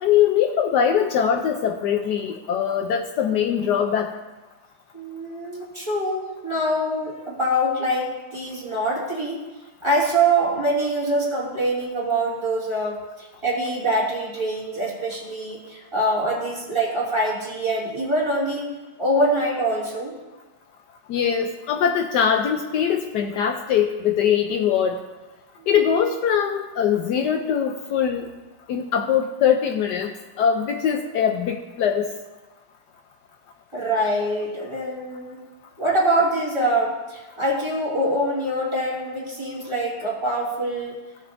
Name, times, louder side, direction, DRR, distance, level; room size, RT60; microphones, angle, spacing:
voice 1, 0.0-4.1 21.1-25.0 25.7-28.3 28.7-30.1 30.4-32.1, left 8 dB, 75° left, 4 dB, 1.2 m, -22 dB
voice 2, 4.9-9.4 9.8-18.6 19.0-20.2 25.6-25.7 33.7-35.4 35.8-41.0, right 1 dB, 15° right, -7 dB, 2.8 m, -24 dB
17.0 x 6.2 x 2.6 m, 1.1 s
omnidirectional pair, 2.0 m